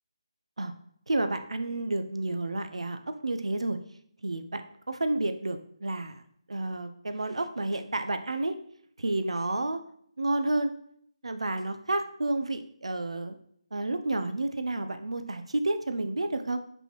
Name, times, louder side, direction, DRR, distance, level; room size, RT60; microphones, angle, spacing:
voice 1, 1.1-3.8 4.2-4.6 4.9-6.2 6.5-8.6 9.0-9.8 10.2-10.7 11.2-13.4 13.7-16.6, right 2 dB, 75° right, 9 dB, 0.6 m, -30 dB
6.9 x 5.4 x 3.0 m, 0.66 s
figure-of-eight pair, 155°, 3 cm